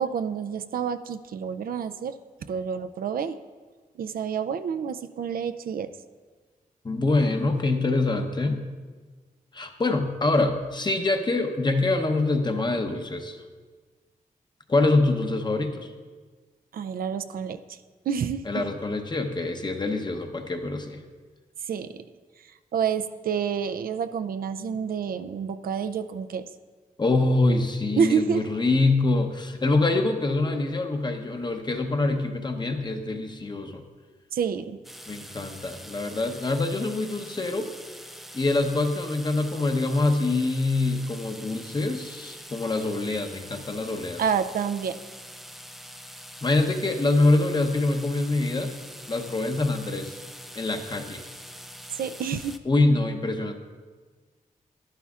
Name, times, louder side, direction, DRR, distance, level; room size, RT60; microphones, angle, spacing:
voice 1, 0.0-2.1 2.5-3.4 4.0-5.9 16.7-17.6 18.1-18.4 21.7-22.0 22.7-26.5 28.0-28.4 34.3-34.8 44.2-44.9 52.0-52.6, right 7 dB, 85° right, 10 dB, 0.4 m, -28 dB
voice 2, 6.8-8.6 9.5-13.4 14.7-15.9 18.4-21.0 27.0-33.8 35.1-37.7 38.3-44.2 46.4-48.8 49.1-50.2 50.5-51.2 52.6-53.6, left 2 dB, 30° left, 5 dB, 0.8 m, -25 dB
sound 1, 34.8-52.6, equal, ahead, 0.4 m, -44 dB
11.5 x 11.0 x 2.4 m, 1.4 s
wide cardioid pair, 105°, 15 cm